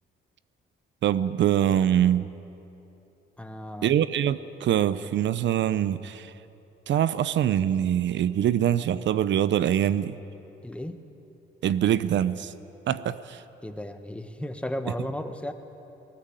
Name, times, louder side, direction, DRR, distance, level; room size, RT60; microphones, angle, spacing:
voice 1, 1.0-2.3 3.8-6.3 6.9-10.2 11.6-12.5 12.9-13.4, right 10 dB, 65° right, 15 dB, 0.7 m, -24 dB
voice 2, 3.4-4.0 10.6-11.0 13.6-15.5, left 1 dB, 5° left, 8 dB, 1.4 m, -34 dB
19.0 x 18.5 x 9.1 m, 2.9 s
cardioid pair, 90°, 20 cm